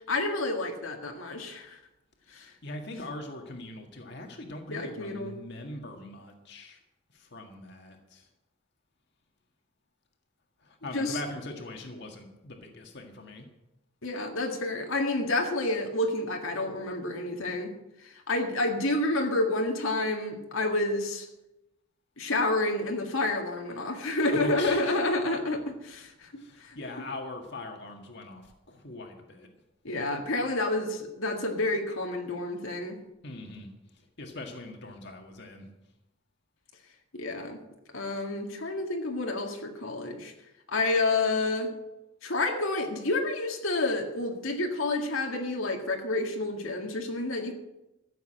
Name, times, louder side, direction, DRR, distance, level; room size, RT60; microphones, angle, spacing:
voice 1, 0.1-1.8 2.3-2.5 4.7-5.4 10.9-11.2 14.0-17.7 18.0-21.3 22.2-26.8 29.8-33.0 37.1-37.6 37.9-40.3 40.7-41.7 42.2-47.5, left 2 dB, 80° left, 2 dB, 1.9 m, -29 dB
voice 2, 2.3-6.8 7.1-8.3 10.6-13.4 24.3-24.9 26.4-29.5 33.2-33.7 34.2-35.7, left 2 dB, 55° left, 3 dB, 1.8 m, -41 dB
14.5 x 7.3 x 8.8 m, 0.95 s
head